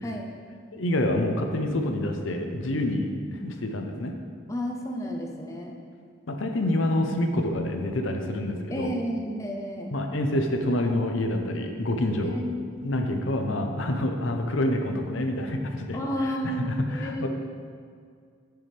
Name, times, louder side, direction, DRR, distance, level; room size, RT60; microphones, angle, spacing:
voice 1, 0.7-4.1 6.3-8.9 9.9-12.4 12.8-17.3, left 1 dB, 75° left, 4 dB, 0.8 m, -27 dB
voice 2, 4.5-5.8 8.7-9.9 12.2-12.6 15.9-17.3, equal, 15° left, 0 dB, 0.6 m, -31 dB
9.4 x 6.8 x 3.4 m, 2.1 s
head